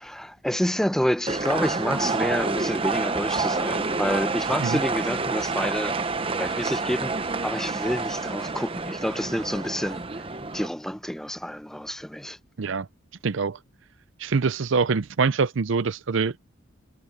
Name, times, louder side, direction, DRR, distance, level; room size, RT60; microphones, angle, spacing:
voice 1, 0.0-6.0 6.4-10.2 10.5-12.4, equal, ahead, 0.8 m, -28 dB
sound 1, 1.3-10.7, right 3 dB, 25° right, 0.8 m, -28 dB
voice 2, 13.2-13.6 14.2-16.4, right 5 dB, 60° right, 0.5 m, -24 dB
head